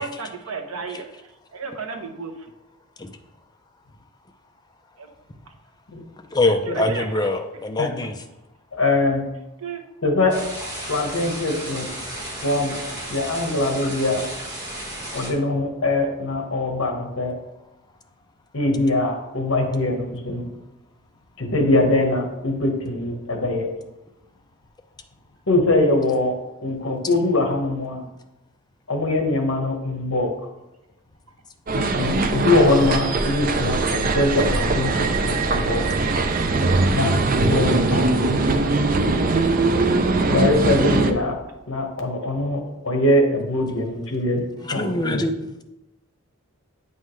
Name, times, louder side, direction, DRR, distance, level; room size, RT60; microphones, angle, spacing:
voice 1, 0.0-2.3 5.0-5.1 6.4-7.1 9.6-9.8 44.6-44.9, right 4 dB, 85° right, 5 dB, 1.0 m, -34 dB
voice 2, 6.3-8.1 44.6-45.3, left 2 dB, 20° left, 5 dB, 0.5 m, -23 dB
voice 3, 8.7-9.2 10.0-10.4 10.9-11.9 12.4-12.8 13.1-14.2 15.1-17.3 18.5-20.5 21.4-23.7 25.5-26.3 26.6-28.0 28.9-30.3 31.7-35.8 36.9-38.4 40.3-41.3 41.7-44.4 44.7-45.2, left 2 dB, 65° left, 3 dB, 1.3 m, -22 dB
sound 1, 10.3-15.3, right 1 dB, 20° right, 1.5 m, -33 dB
sound 2, 31.7-41.1, right 3 dB, 40° right, 0.5 m, -21 dB
9.0 x 5.5 x 3.2 m, 0.94 s
head